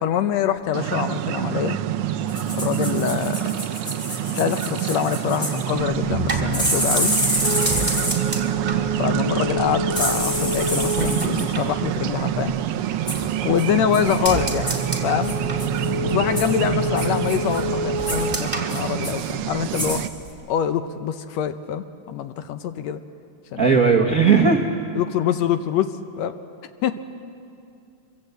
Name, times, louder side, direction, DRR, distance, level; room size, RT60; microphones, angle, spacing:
voice 1, 0.0-1.8 2.5-3.5 4.3-7.1 9.0-12.5 13.2-14.7 15.0-15.4 16.0-20.0 20.5-23.0 23.5-23.8 24.4-24.5 25.0-26.4 26.8-27.0, left 9 dB, 75° left, 10 dB, 1.8 m, -25 dB
sound 1, 0.7-20.1, right 11 dB, 90° right, 1.2 m, -26 dB
sound 2, 2.3-5.6 6.5-8.4 9.9-11.5 13.1-13.3 13.6-13.7 13.9-14.2 14.7-14.9 15.2-15.9 16.4-16.5 17.0-17.6 18.0-18.3 18.7-19.3 19.6-20.0 20.3-20.4, equal, 30° left, 6.3 m, -27 dB
sound 3, 5.8-12.6 12.9-13.6 13.9-19.6 19.9-20.4, left 1 dB, 15° right, 2.1 m, -29 dB
voice 2, 23.6-24.6, right 5 dB, 60° right, 1 dB, 0.9 m, -16 dB
25.5 x 23.5 x 8.0 m, 2.5 s
omnidirectional pair, 3.4 m